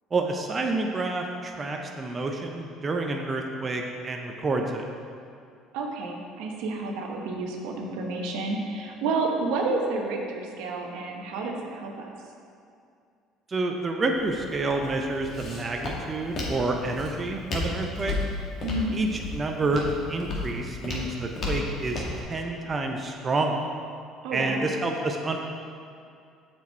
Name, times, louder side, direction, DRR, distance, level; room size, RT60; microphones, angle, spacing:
voice 1, 0.1-4.8 13.5-18.1 18.9-23.6 24.3-25.4, right 2 dB, 30° right, 2 dB, 0.7 m, -28 dB
voice 2, 5.7-12.1 18.6-19.0 24.2-24.7, right 3 dB, 75° right, 1 dB, 1.0 m, -30 dB
Walk footsteps, 14.1-22.2, left 2 dB, 50° left, 2.0 m, -34 dB
7.1 x 6.1 x 4.5 m, 2.4 s
hypercardioid pair, 70°, 0 cm